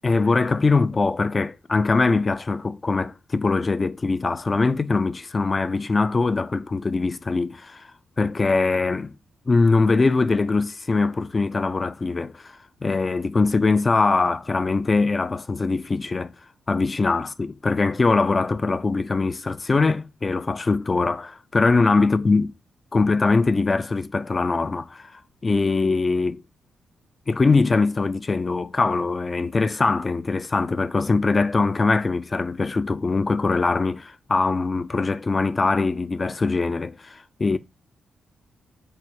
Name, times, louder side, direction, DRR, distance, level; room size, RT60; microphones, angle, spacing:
voice 1, 0.0-7.9 8.2-9.1 9.5-12.5 12.8-16.3 16.7-22.5 22.9-25.1 25.4-26.4 27.3-37.6, left 3 dB, 30° left, 0.3 m, -22 dB
4.7 x 2.0 x 4.2 m
cardioid pair, 90°, 0 cm